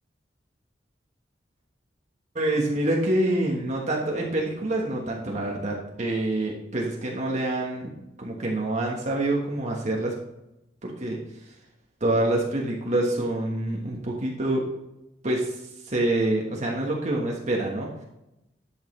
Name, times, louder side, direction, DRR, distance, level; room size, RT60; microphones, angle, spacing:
voice 1, 2.3-7.9 8.2-10.1 10.8-11.2 12.0-14.6 15.2-15.5 15.8-18.0, right 1 dB, 40° right, -1 dB, 1.3 m, -26 dB
11.0 x 6.5 x 3.2 m, 0.90 s
head